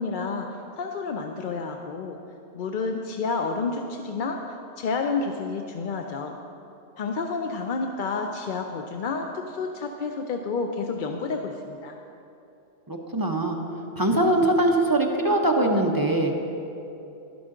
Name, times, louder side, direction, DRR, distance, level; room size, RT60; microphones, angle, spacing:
voice 1, 0.0-2.2 2.5-4.4 4.8-6.4 7.0-12.0, left 4 dB, 60° left, 4 dB, 0.5 m, -30 dB
voice 2, 12.9-13.6 14.0-16.3, right 1 dB, 25° right, 1 dB, 0.5 m, -22 dB
12.0 x 11.0 x 3.7 m, 2.8 s
omnidirectional pair, 1.3 m